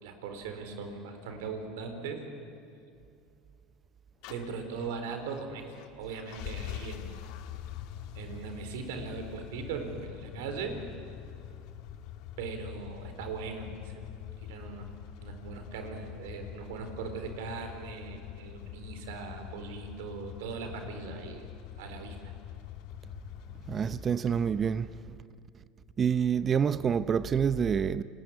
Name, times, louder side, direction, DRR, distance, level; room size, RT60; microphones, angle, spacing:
voice 1, 0.0-2.2 4.3-7.2 8.1-10.8 12.4-13.9 14.4-14.9 15.2-21.4 21.8-22.3, right 5 dB, 85° right, 4.3 m, -39 dB
sound 1, 4.2-24.1, left 10 dB, 65° left, 1.6 m, -44 dB
voice 2, 23.7-24.9 26.0-28.0, right 7 dB, 30° right, 0.7 m, -27 dB
29.5 x 20.0 x 9.9 m
supercardioid pair, 110°, 0 cm